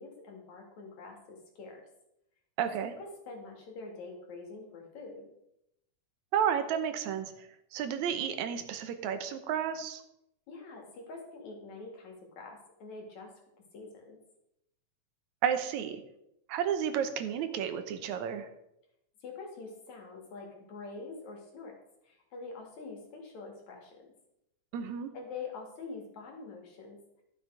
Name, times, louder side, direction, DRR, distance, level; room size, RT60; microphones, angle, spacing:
voice 1, 0.0-1.8 2.6-5.3 10.5-13.3 13.7-14.2 19.2-21.7 22.0-23.9 25.1-27.0, left 4 dB, 75° left, 0 dB, 3.5 m, -45 dB
voice 2, 2.6-2.9 6.3-7.5 7.7-10.0 15.4-16.0 16.5-18.5 24.7-25.1, right 8 dB, 80° right, 8 dB, 2.2 m, -32 dB
12.0 x 7.3 x 4.6 m, 0.82 s
omnidirectional pair, 3.3 m